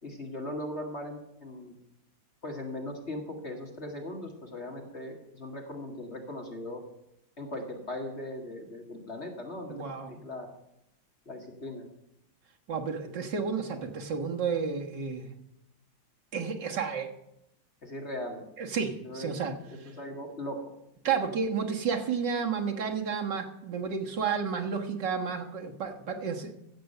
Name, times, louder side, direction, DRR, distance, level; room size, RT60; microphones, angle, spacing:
voice 1, 0.0-1.7 2.4-6.8 7.4-9.8 10.1-10.5 11.3-11.9 17.8-18.4 19.0-19.4 19.8-20.6, left 1 dB, 35° left, 1 dB, 2.0 m, -39 dB
voice 2, 9.7-10.2 12.7-15.3 16.3-17.1 18.6-19.9 21.0-26.5, right 6 dB, 65° right, 2 dB, 2.0 m, -31 dB
15.5 x 7.8 x 6.7 m, 0.84 s
omnidirectional pair, 2.1 m